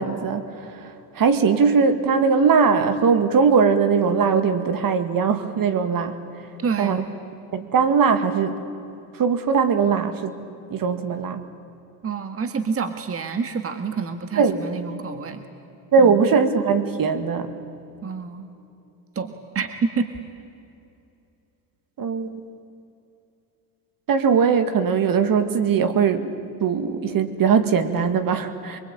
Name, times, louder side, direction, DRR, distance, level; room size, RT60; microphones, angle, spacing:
voice 1, 0.0-6.2 6.8-7.0 7.5-8.6 9.2-10.4 10.7-11.4 14.4-14.6 15.9-17.5 22.0-22.4 24.1-26.3 26.6-28.8, right 5 dB, 50° right, 10 dB, 2.1 m, -20 dB
voice 2, 6.6-7.1 12.0-15.4 16.0-16.3 18.0-18.5 19.1-20.1, right 5 dB, 30° right, 8 dB, 1.6 m, -28 dB
24.0 x 23.5 x 8.9 m, 2.7 s
supercardioid pair, 85°, 43 cm